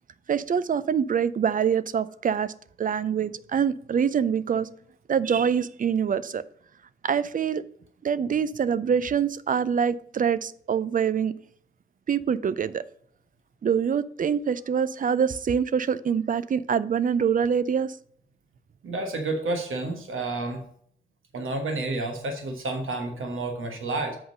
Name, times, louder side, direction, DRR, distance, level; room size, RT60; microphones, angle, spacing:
voice 1, 0.3-2.5 2.8-4.7 5.1-6.4 7.0-7.6 8.0-11.3 12.1-12.8 13.6-17.9, right 7 dB, 40° right, 0.4 m, -25 dB
voice 2, 18.8-20.6 21.3-24.2, right 2 dB, 75° right, 1.3 m, -30 dB
7.9 x 3.8 x 6.4 m
wide cardioid pair, 175°, 21 cm